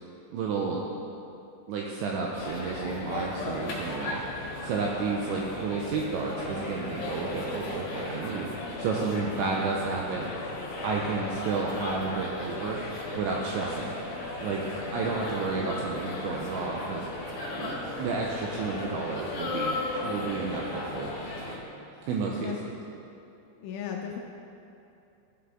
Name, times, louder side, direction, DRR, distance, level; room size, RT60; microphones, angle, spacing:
voice 1, 0.3-0.8 1.7-4.2 4.6-8.5 8.8-10.3 10.8-12.8 13.2-13.9 14.4-17.1 17.5-19.8 20.0-21.1 22.1-22.5, right 4 dB, 80° right, -1 dB, 2.7 m, -31 dB
sound 1, 2.3-21.6, left 2 dB, 60° left, 2.7 m, -36 dB
voice 2, 23.6-24.2, left 8 dB, 85° left, 1 dB, 2.8 m, -35 dB
15.0 x 7.6 x 3.7 m, 2.8 s
omnidirectional pair, 5.9 m